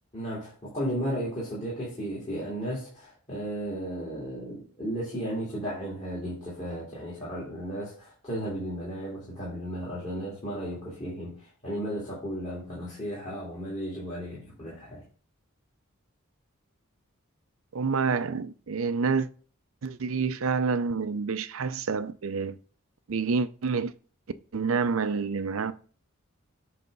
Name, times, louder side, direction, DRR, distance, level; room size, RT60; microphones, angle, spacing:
voice 1, 0.1-15.0, equal, 30° left, 2.5 m, -34 dB
voice 2, 17.7-19.3 19.8-22.6 23.1-23.9 24.5-25.7, right 5 dB, 70° right, 0.5 m, -28 dB
7.7 x 3.4 x 5.3 m
head